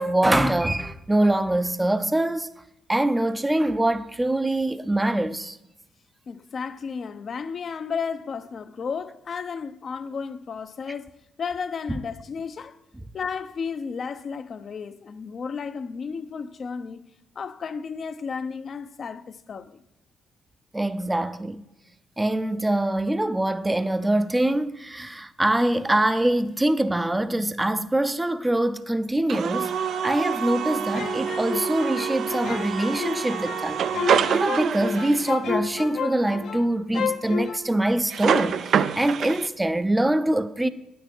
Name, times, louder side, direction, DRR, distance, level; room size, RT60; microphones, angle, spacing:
voice 1, 0.0-2.5 2.9-5.6 20.7-21.6 22.2-29.8 30.0-33.9 34.3-40.7, right 1 dB, 10° right, 0.6 m, -24 dB
voice 2, 6.3-11.1 11.4-12.8 13.1-17.0 17.4-19.8, left 5 dB, 50° left, 0.7 m, -33 dB
sound 1, 29.3-35.4 38.1-39.5, right 8 dB, 65° right, 0.4 m, -26 dB
sound 2, 30.9-36.7 36.9-37.6, left 6 dB, 75° left, 1.1 m, -31 dB
9.7 x 9.2 x 4.4 m
cardioid pair, 90°, 0 cm